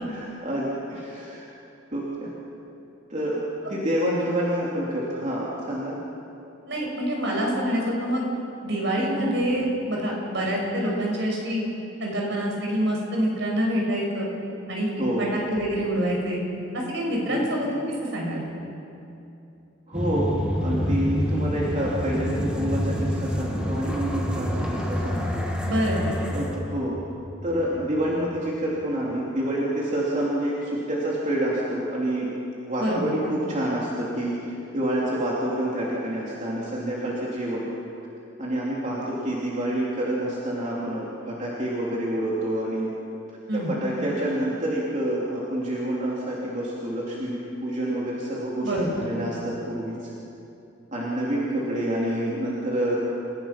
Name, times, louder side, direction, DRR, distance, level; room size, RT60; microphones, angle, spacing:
voice 1, 0.0-1.5 1.9-2.3 3.1-3.4 3.7-6.0 9.1-9.2 15.0-15.3 17.3-17.4 19.9-25.4 26.3-26.9 27.4-32.3 32.7-34.4 34.7-37.6 38.4-42.9 43.5-50.0 50.9-53.0, right 1 dB, 40° right, -6 dB, 3.1 m, -28 dB
voice 2, 6.7-8.2 8.6-11.6 12.0-14.3 14.7-16.4 16.7-17.7 18.0-18.4 25.6-26.2 32.8-33.0 43.5-43.7 48.6-48.9, equal, 65° right, -1 dB, 6.0 m, -26 dB
sound 1, 19.9-28.1, equal, 5° right, 2.1 m, -28 dB
29.5 x 16.0 x 5.9 m, 2.8 s
head